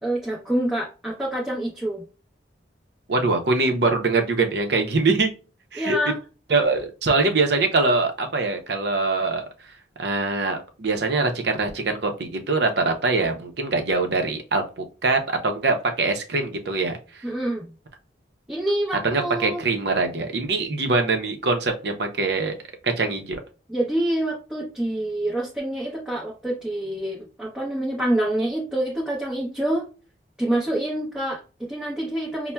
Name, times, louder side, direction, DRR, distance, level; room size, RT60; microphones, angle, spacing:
voice 1, 0.0-2.1 5.8-6.2 17.2-17.7 18.5-19.6 23.7-29.9 30.4-32.5, right 1 dB, 5° right, -5 dB, 0.7 m, -26 dB
voice 2, 3.1-5.3 5.7-6.0 6.5-9.4 10.0-17.3 19.0-22.6 22.8-23.4, right 3 dB, 65° right, 5 dB, 0.6 m, -23 dB
5.5 x 2.1 x 2.2 m, 0.33 s
head